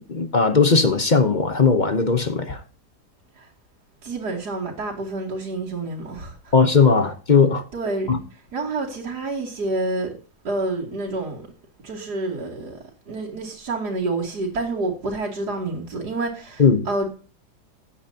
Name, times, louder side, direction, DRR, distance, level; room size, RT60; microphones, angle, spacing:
voice 1, 0.0-2.6 6.5-7.6 8.1-8.2 16.6-16.9, left 4 dB, 35° left, 0.8 m, -18 dB
voice 2, 4.0-6.5 7.7-8.1 8.5-10.1 10.4-11.5 11.8-12.8 13.1-17.1, right 2 dB, 70° right, 3.3 m, -28 dB
15.5 x 9.6 x 2.8 m
omnidirectional pair, 1.8 m